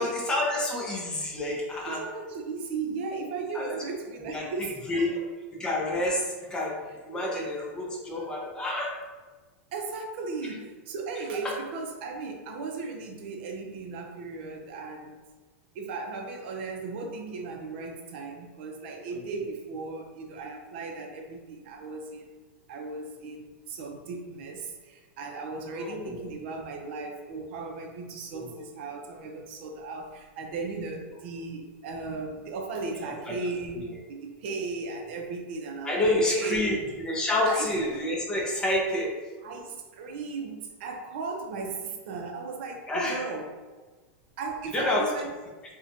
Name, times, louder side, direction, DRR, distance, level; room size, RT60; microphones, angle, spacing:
voice 1, 0.0-2.0 3.5-3.8 4.3-5.1 5.6-6.8 7.1-8.9 11.4-11.5 25.7-26.3 28.3-28.6 33.3-33.4 33.7-33.8 35.8-39.2 42.9-43.2 44.7-45.0, left 1 dB, 10° left, -2 dB, 0.4 m, -28 dB
voice 2, 1.9-5.3 7.1-7.6 7.9-8.3 9.7-15.2 15.7-22.4 22.7-36.8 37.4-37.7 38.6-38.7 39.4-43.5 44.4-45.3, right 4 dB, 60° right, 2 dB, 0.4 m, -36 dB
2.6 x 2.1 x 2.5 m, 1.3 s
supercardioid pair, 155°, 7 cm